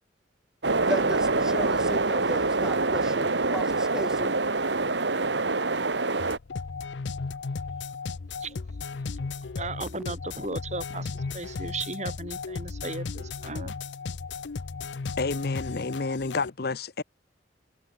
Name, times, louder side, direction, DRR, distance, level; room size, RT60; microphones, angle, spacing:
sound 1, 0.6-6.4, right 3 dB, 80° right, 1.9 m, -25 dB
voice 1, 0.9-4.3, equal, 5° right, 2.2 m, -35 dB
sound 2, 6.2-16.5, left 4 dB, 85° left, 0.6 m, -35 dB
voice 2, 8.4-13.8, right 3 dB, 40° right, 4.8 m, -37 dB
voice 3, 15.2-17.0, left 3 dB, 60° left, 0.9 m, -30 dB
head